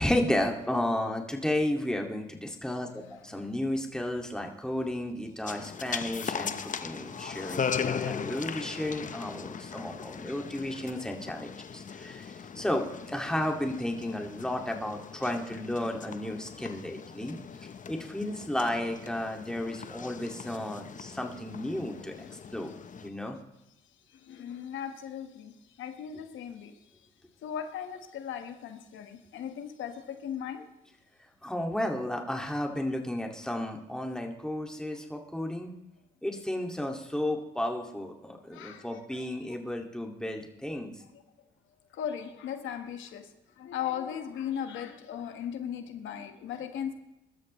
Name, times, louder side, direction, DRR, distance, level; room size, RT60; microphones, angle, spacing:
voice 1, 0.0-17.4 17.9-22.1 22.5-22.7 23.0-23.4 31.4-35.7 36.2-40.9, left 1 dB, 5° left, 2 dB, 2.2 m, -33 dB
voice 2, 3.0-3.5 22.2-22.3 24.3-25.5 25.8-26.7 27.4-30.7 38.5-39.3 41.1-41.2 41.9-43.3 43.6-46.9, left 9 dB, 80° left, 6 dB, 1.5 m, -37 dB
sound 1, 5.5-23.1, left 6 dB, 40° left, 0.9 m, -39 dB
22.5 x 13.0 x 3.2 m, 0.93 s
cardioid pair, 90°, 20 cm